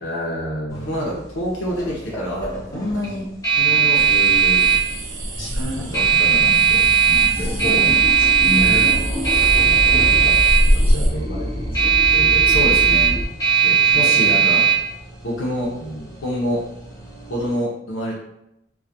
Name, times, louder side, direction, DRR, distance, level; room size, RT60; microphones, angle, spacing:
voice 1, 0.0-1.0 4.1-4.8 7.3-9.0 9.5-12.7 13.6-14.6 15.7-16.1, equal, 50° left, -5 dB, 0.8 m, -31 dB
voice 2, 0.7-3.3 3.6-4.0 5.4-7.5 8.4-8.8 12.5-13.2 13.9-14.7 15.2-15.7 16.2-16.6 17.3-18.2, left 1 dB, 85° left, -4 dB, 0.5 m, -27 dB
sound 1, 0.7-17.5, right 8 dB, 15° left, 0.7 m, -19 dB
sound 2, 3.9-11.1, equal, 90° right, 0.4 m, -25 dB
sound 3, 5.3-13.2, equal, 30° right, 0.5 m, -27 dB
2.2 x 2.1 x 2.7 m, 0.82 s
head